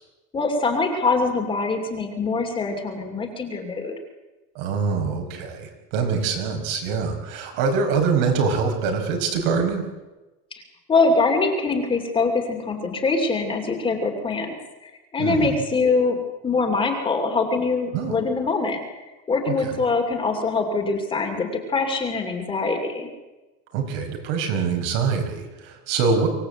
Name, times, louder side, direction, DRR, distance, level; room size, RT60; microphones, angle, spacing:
voice 1, 0.3-3.9 10.5-10.6 10.9-14.5 14.8-16.2 16.4-18.8 19.3-23.1, left 3 dB, 15° left, 4 dB, 2.6 m, -23 dB
voice 2, 4.5-9.8 15.2-15.6 17.9-18.2 19.5-19.8 23.7-26.3, right 5 dB, 70° right, 3 dB, 5.1 m, -24 dB
24.5 x 18.0 x 7.9 m, 1.1 s
cardioid pair, 170°, 30 cm